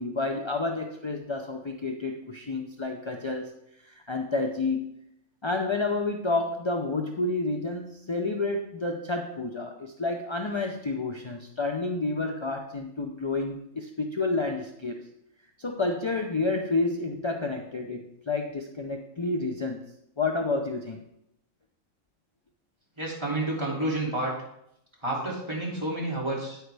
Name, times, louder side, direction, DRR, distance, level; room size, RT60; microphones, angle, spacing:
voice 1, 0.0-3.5 3.8-4.9 5.4-15.0 15.6-19.8 20.2-21.0, left 3 dB, 40° left, 3 dB, 0.4 m, -30 dB
voice 2, 23.0-24.3 25.0-26.6, right 1 dB, 20° right, -5 dB, 2.8 m, -30 dB
9.1 x 9.1 x 3.4 m, 0.78 s
omnidirectional pair, 1.4 m